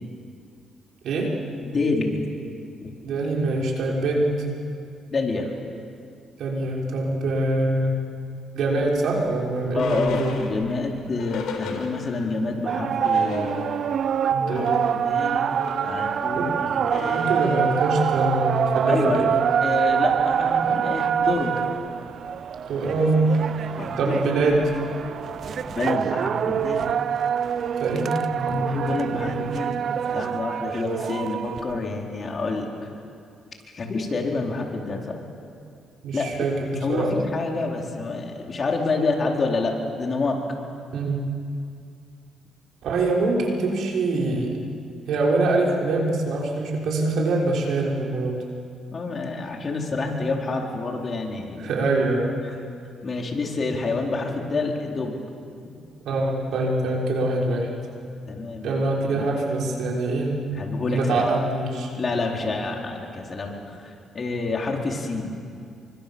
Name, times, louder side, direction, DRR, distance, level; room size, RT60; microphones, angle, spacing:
voice 1, 1.6-2.3 2.8-2.9 5.1-5.5 9.7-13.7 14.5-15.5 15.8-17.2 18.9-19.3 19.6-21.6 23.8-24.2 25.6-26.9 28.5-29.8 30.1-32.9 33.7-35.2 36.1-36.3 36.8-40.4 48.9-51.7 52.4-52.5 53.0-55.2 58.3-58.8 59.1-59.3 60.5-61.2 62.0-65.4, left 3 dB, 40° left, 0 dB, 4.5 m, -28 dB
voice 2, 3.0-4.4 6.4-8.0 8.5-10.4 14.3-14.8 16.3-16.5 17.1-19.3 22.7-23.4 24.0-24.7 27.8-28.9 36.0-37.1 40.9-41.2 42.8-44.6 45.1-48.4 51.6-52.4 56.0-57.7 58.6-60.3 60.9-61.9, right 2 dB, 75° right, -2 dB, 5.8 m, -24 dB
sound 1, 9.0-12.4 12.7-12.8 13.0-14.1 14.4-24.8, left 6 dB, 85° left, 4.3 m, -39 dB
sound 2, 12.7-31.8, right 8 dB, 60° right, 0.7 m, -25 dB
29.5 x 24.5 x 7.3 m, 2.4 s
cardioid pair, 90°, 0 cm